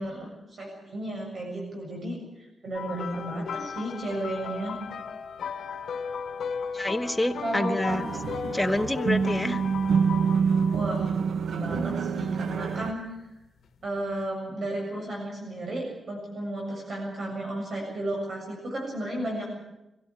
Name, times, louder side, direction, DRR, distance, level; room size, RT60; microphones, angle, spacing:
voice 1, 0.0-4.8 7.4-8.1 8.4-8.5 10.7-11.1 11.5-13.1 13.8-19.6, right 1 dB, 50° right, 0 dB, 7.4 m, -33 dB
sound 1, 2.7-11.0 11.9-12.1 14.0-14.1, left 6 dB, 80° left, 1.7 m, -36 dB
voice 2, 6.7-8.1 8.5-9.6, left 1 dB, 5° left, 7 dB, 1.3 m, -27 dB
sound 2, 7.9-12.9, right 6 dB, 90° right, 1.2 m, -26 dB
24.0 x 16.5 x 8.4 m, 0.93 s
wide cardioid pair, 145°, 0 cm